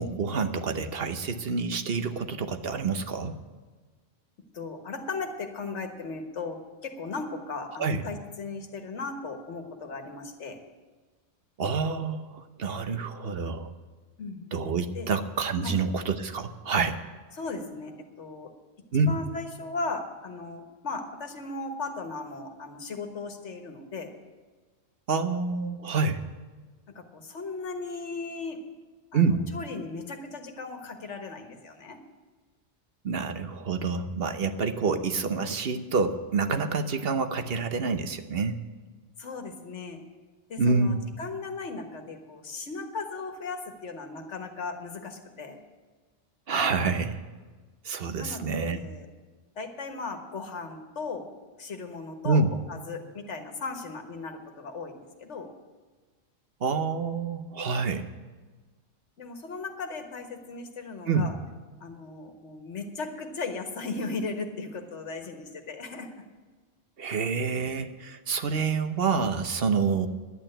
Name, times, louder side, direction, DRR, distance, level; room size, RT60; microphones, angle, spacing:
voice 1, 0.0-3.4 7.8-8.0 11.6-13.7 14.5-17.0 18.9-19.1 25.1-26.2 29.1-29.5 33.0-38.6 40.6-41.0 46.5-47.2 47.8-48.8 52.2-52.5 56.6-58.1 61.1-61.3 67.0-70.1, right 4 dB, 60° right, 9 dB, 1.0 m, -27 dB
voice 2, 4.5-10.6 14.2-14.5 14.9-15.1 15.6-15.7 17.3-17.9 18.2-18.5 18.9-24.1 26.9-28.6 29.1-32.0 39.2-40.0 40.5-45.6 48.2-49.1 49.5-51.3 51.6-52.4 52.7-55.5 59.2-61.3 61.8-66.1, left 3 dB, 90° left, 5 dB, 1.7 m, -37 dB
11.0 x 8.8 x 8.9 m, 1.4 s
omnidirectional pair, 1.2 m